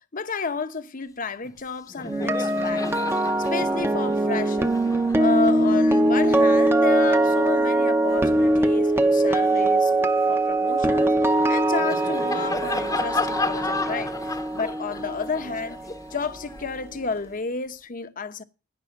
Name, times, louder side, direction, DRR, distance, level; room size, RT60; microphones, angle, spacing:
voice 1, 0.1-2.9 3.5-4.7 5.2-11.2 11.5-14.1 14.5-15.8 16.1-18.4, left 4 dB, 45° left, 0.9 m, -31 dB
Laughter, 1.4-1.6 1.9-8.6 9.1-17.3, left 3 dB, 20° left, 0.9 m, -35 dB
sound 1, 2.1-16.1 16.4-16.7, right 1 dB, 10° right, 0.8 m, -22 dB
16.5 x 5.5 x 5.9 m
head